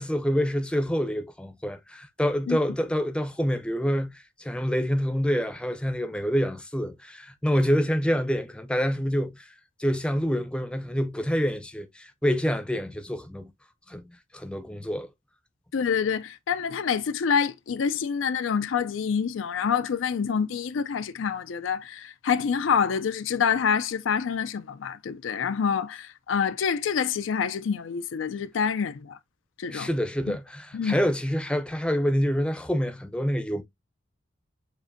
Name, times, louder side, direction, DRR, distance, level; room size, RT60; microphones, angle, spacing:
voice 1, 0.0-9.5 9.8-13.5 13.9-14.0 14.3-15.1 29.7-33.6, equal, 5° left, 0.6 m, -27 dB
voice 2, 15.7-29.2 29.6-29.9 30.3-30.4 30.7-31.0, left 6 dB, 80° left, 0.4 m, -27 dB
7.0 x 2.6 x 2.6 m
head